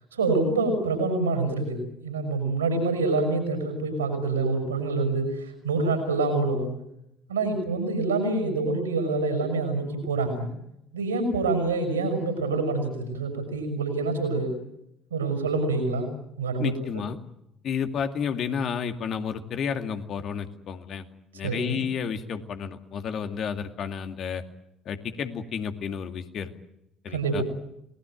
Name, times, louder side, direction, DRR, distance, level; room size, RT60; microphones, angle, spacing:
voice 1, 0.1-6.7 7.3-10.5 10.9-14.5 15.1-16.1 16.4-17.1 21.4-21.8 27.1-27.4, right 3 dB, 85° right, 7 dB, 6.1 m, -26 dB
voice 2, 16.6-17.2 17.6-21.0 21.3-24.4 24.9-26.5 27.0-27.4, left 7 dB, 55° left, 7 dB, 2.3 m, -31 dB
28.5 x 19.5 x 9.0 m, 0.84 s
figure-of-eight pair, 50°, 0 cm